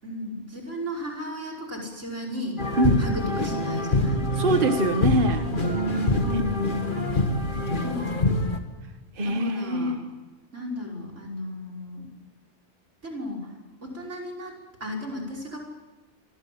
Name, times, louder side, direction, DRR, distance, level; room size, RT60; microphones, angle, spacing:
voice 1, 0.0-2.7 3.0-4.2 6.2-6.7 7.8-8.3 9.2-10.0 10.5-12.1 13.0-13.4 13.8-15.6, equal, 80° right, 1 dB, 5.8 m, -35 dB
sound 1, 2.6-8.6, left 2 dB, 45° left, 2.3 m, -25 dB
voice 2, 4.3-5.5 6.3-6.4 9.2-10.0, right 1 dB, 45° right, 6 dB, 1.5 m, -24 dB
28.0 x 25.0 x 7.7 m, 1.2 s
omnidirectional pair, 1.2 m